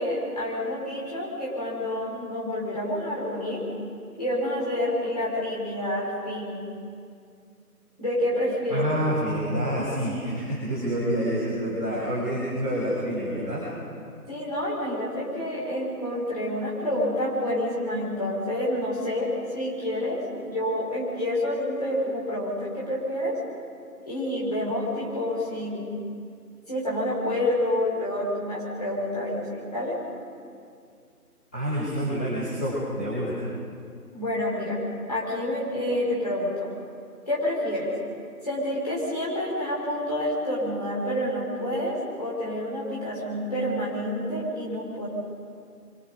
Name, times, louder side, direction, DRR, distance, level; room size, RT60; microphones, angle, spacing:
voice 1, 0.0-3.6 4.2-6.7 8.0-8.9 14.3-23.4 24.0-25.9 26.7-30.0 34.1-34.8 35.1-36.7 37.3-37.9 38.4-45.1, left 1 dB, 25° left, -7 dB, 5.6 m, -28 dB
voice 2, 8.7-13.7 31.5-33.4, equal, 5° left, -20 dB, 3.3 m, -27 dB
26.5 x 25.5 x 5.2 m, 2.3 s
figure-of-eight pair, 170°, 47 cm